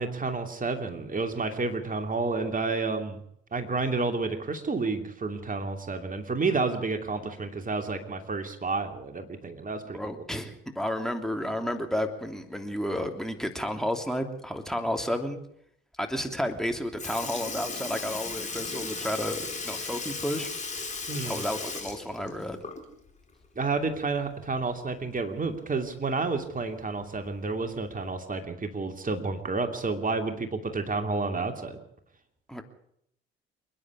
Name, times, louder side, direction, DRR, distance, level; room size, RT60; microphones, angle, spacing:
voice 1, 0.0-3.2 3.5-10.0 21.1-21.4 23.6-31.8, right 3 dB, 25° right, 6 dB, 2.8 m, -30 dB
voice 2, 9.9-15.4 16.0-20.5 21.2-22.6 32.5-32.6, equal, ahead, 6 dB, 3.0 m, -31 dB
Sink (filling or washing) / Liquid, 16.6-16.7 17.0-23.1 23.4-23.5 25.1-25.2 26.1-26.2 27.0-27.3 28.1-28.2, left 4 dB, 25° left, 4.8 m, -36 dB
28.0 x 10.5 x 9.8 m, 0.72 s
figure-of-eight pair, 50°, 30 cm